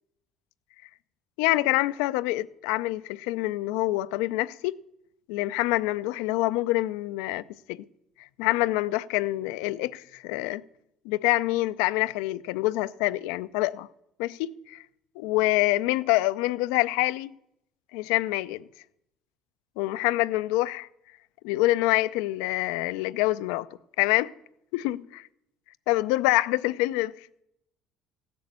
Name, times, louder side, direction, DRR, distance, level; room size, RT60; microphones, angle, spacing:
voice 1, 1.4-4.8 5.3-7.8 8.2-10.6 11.0-13.9 14.2-14.8 15.2-17.3 17.9-18.7 19.8-20.9 21.4-23.7 24.0-24.3 24.7-25.3 25.9-27.4, left 18 dB, 85° left, 0.4 m, -26 dB
15.0 x 6.9 x 8.0 m
supercardioid pair, 90°, 0 cm